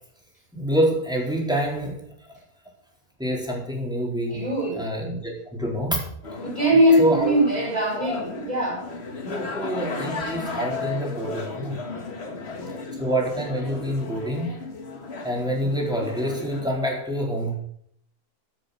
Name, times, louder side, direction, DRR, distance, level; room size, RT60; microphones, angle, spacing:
voice 1, 0.5-2.0 3.2-4.4 4.8-6.0 7.0-7.3 7.9-8.0 9.2-11.8 13.0-14.5 15.2-17.5, equal, ahead, -2 dB, 4.0 m, -26 dB
voice 2, 4.3-4.8 6.4-8.9 12.2-12.9 14.9-15.0, equal, 25° right, -1 dB, 4.9 m, -22 dB
sound 1, 6.2-16.7, left 3 dB, 40° left, 1.7 m, -35 dB
15.0 x 7.6 x 6.6 m, 0.68 s
omnidirectional pair, 1.7 m